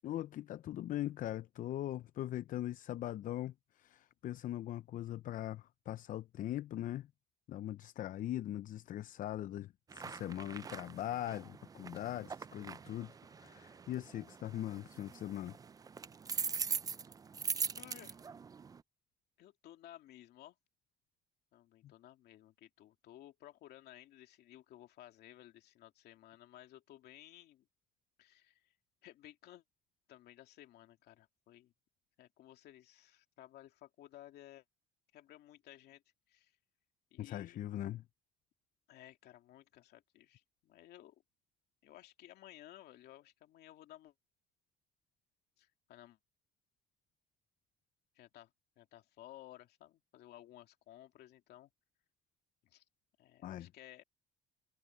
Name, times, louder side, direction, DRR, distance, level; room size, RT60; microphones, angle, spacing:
voice 1, 0.0-7.1 7.5-15.6 21.8-21.9 37.2-38.0 53.4-53.7, left 13 dB, 55° left, 0.5 m, -41 dB
sound 1, 9.9-18.8, right 6 dB, 20° right, 0.4 m, -42 dB
voice 2, 17.8-18.2 19.4-20.6 21.5-27.7 28.2-28.6 29.0-29.6 30.1-31.7 32.2-34.6 35.1-36.0 36.3-36.5 37.1-37.6 38.9-41.2 41.8-44.1 45.6-46.2 48.1-51.7 52.6-52.8 53.2-54.0, left 13 dB, 75° left, 2.5 m, -57 dB
cardioid pair, 110°, 17 cm